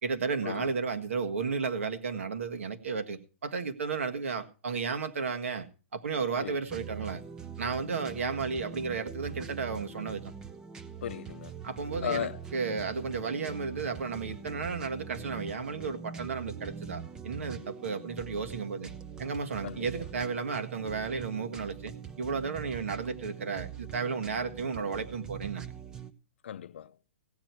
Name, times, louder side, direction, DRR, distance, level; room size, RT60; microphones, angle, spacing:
voice 1, 0.0-5.7 5.9-7.2 7.6-10.3 11.6-18.9 19.2-25.7, right 5 dB, 85° right, 1.7 m, -33 dB
sound 1, 6.7-26.1, right 7 dB, 10° right, 0.5 m, -43 dB
voice 2, 11.0-11.5 12.0-12.4 19.6-19.9 26.4-26.9, left 10 dB, 60° left, 0.5 m, -36 dB
16.0 x 9.6 x 4.5 m
hypercardioid pair, 165°, 7 cm